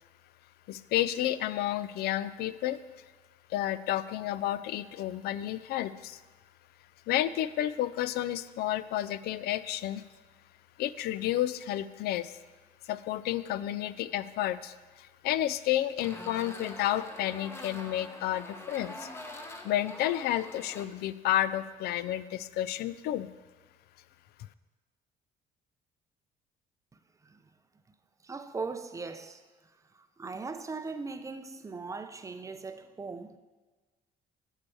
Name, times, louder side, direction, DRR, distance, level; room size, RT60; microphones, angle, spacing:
voice 1, 0.7-2.8 3.5-6.2 7.1-10.0 10.8-12.3 12.9-19.1 19.6-23.3, left 13 dB, 70° left, 0.4 m, -31 dB
sound 1, 16.0-20.9, left 1 dB, 15° left, 0.8 m, -44 dB
voice 2, 28.2-29.4 29.9-33.4, right 4 dB, 20° right, 0.5 m, -39 dB
8.4 x 4.7 x 6.9 m
cardioid pair, 110°, 17 cm